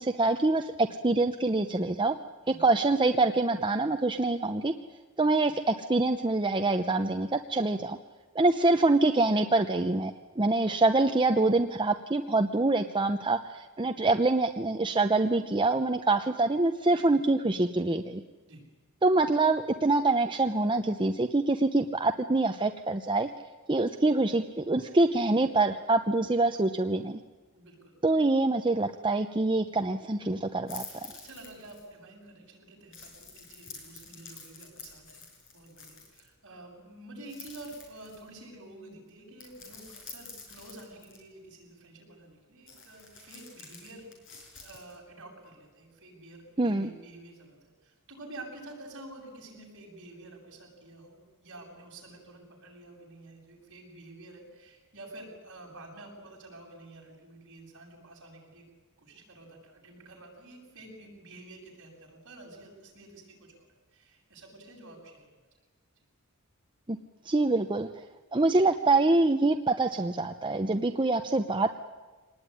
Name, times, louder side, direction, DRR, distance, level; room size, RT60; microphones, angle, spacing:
voice 1, 0.0-2.2 2.6-4.7 5.2-8.0 8.3-18.2 19.0-23.3 23.7-27.2 28.0-31.1 46.6-46.9 66.9-67.0 67.2-67.9 68.3-71.7, right 2 dB, 20° right, 6 dB, 0.7 m, -25 dB
voice 2, 27.5-27.9 31.1-44.1 44.6-58.6 59.0-65.3, right 2 dB, 55° right, -1 dB, 7.9 m, -49 dB
sound 1, 30.7-31.9 32.9-36.3 37.3-38.4 39.4-41.2 42.7-45.0, left 4 dB, 60° left, 6.7 m, -48 dB
24.5 x 19.5 x 10.0 m, 1.3 s
head